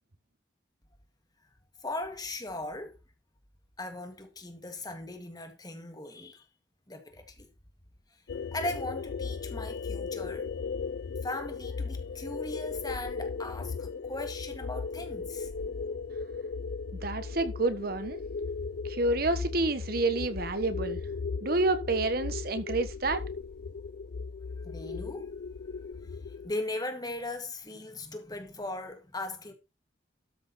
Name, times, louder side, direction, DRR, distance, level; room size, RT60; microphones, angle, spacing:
voice 1, 1.8-2.9 3.8-6.4 6.9-7.5 8.5-10.5 11.2-15.5 24.6-25.3 26.4-29.5, left 2 dB, 20° left, 2.0 m, -38 dB
sound 1, 8.3-26.5, left 4 dB, 65° left, 0.4 m, -37 dB
voice 2, 17.0-18.2 18.8-21.0 21.4-23.2, right 2 dB, 55° right, 1.3 m, -29 dB
13.0 x 6.3 x 4.2 m
head